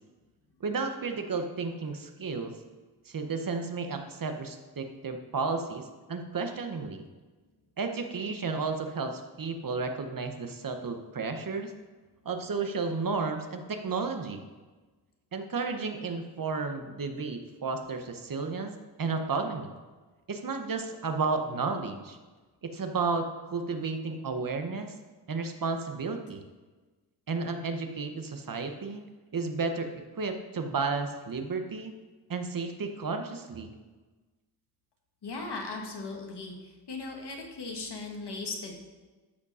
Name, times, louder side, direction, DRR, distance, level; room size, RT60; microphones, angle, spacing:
voice 1, 0.6-2.6 3.1-7.0 7.8-11.7 12.2-14.4 15.3-19.7 20.3-22.2 22.6-24.9 25.3-26.4 27.3-29.0 29.3-29.9 30.2-31.9 32.3-33.7, right 4 dB, 55° right, 6 dB, 0.9 m, -32 dB
voice 2, 35.2-38.7, left 3 dB, 70° left, 1 dB, 1.7 m, -38 dB
13.0 x 5.1 x 5.5 m, 1.3 s
wide cardioid pair, 155°, 41 cm